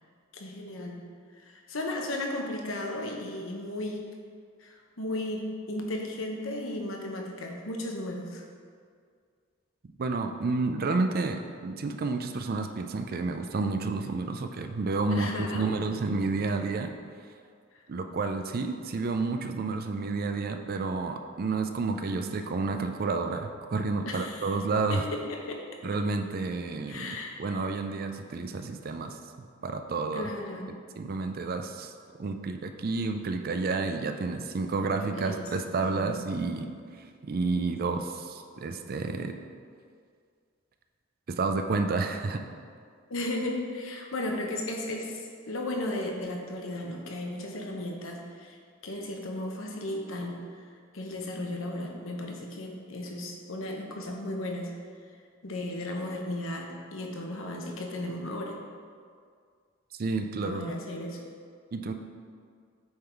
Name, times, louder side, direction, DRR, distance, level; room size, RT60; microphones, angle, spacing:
voice 1, 0.3-1.0 1.4-4.1 4.6-8.4 15.1-15.7 24.1-24.6 24.9-25.7 26.9-27.4 30.1-30.7 35.1-35.5 35.8-36.1 43.1-48.6 48.8-50.4 50.9-54.7 55.4-58.6 60.4-61.2, left 1 dB, 70° left, 1 dB, 1.0 m, -35 dB
voice 2, 10.0-16.9 17.9-25.0 25.8-29.2 29.6-30.3 31.0-31.9 32.2-36.7 37.0-39.4 41.3-42.4 60.0-60.6 61.7-61.9, right 3 dB, 45° right, 7 dB, 0.4 m, -30 dB
8.5 x 3.9 x 4.5 m, 2.1 s
head